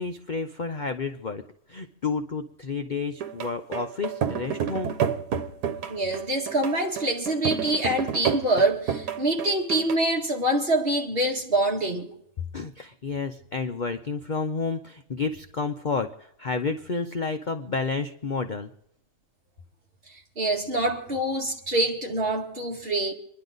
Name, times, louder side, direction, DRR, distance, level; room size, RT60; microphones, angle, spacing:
voice 1, 0.0-1.4 1.7-4.9 12.5-18.7, left 4 dB, 40° left, 0.7 m, -30 dB
sound 1, 3.2-10.0, right 8 dB, 85° right, 1.6 m, -30 dB
voice 2, 5.9-12.1 20.4-23.1, right 1 dB, 35° right, 2.2 m, -25 dB
27.0 x 11.0 x 4.0 m
omnidirectional pair, 1.7 m